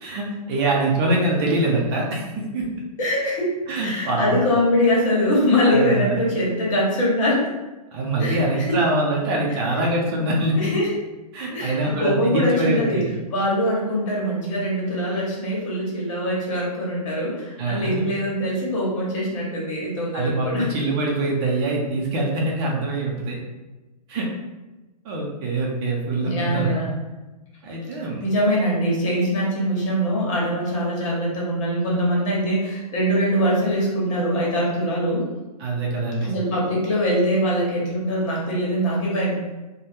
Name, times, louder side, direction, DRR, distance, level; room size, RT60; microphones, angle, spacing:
voice 1, 0.0-2.7 3.7-4.4 5.7-6.2 7.9-10.7 11.3-13.1 17.6-18.1 20.1-23.4 24.1-24.3 25.0-26.9 27.6-28.2 35.6-36.3, right 2 dB, 40° right, -2 dB, 0.7 m, -24 dB
voice 2, 3.0-3.5 3.8-7.5 8.2-8.8 10.6-10.9 11.5-13.0 13.3-20.7 26.2-26.9 28.2-35.3 36.2-39.3, equal, 50° left, -4 dB, 1.3 m, -23 dB
3.1 x 2.3 x 2.7 m, 1.1 s
hypercardioid pair, 125°, 21 cm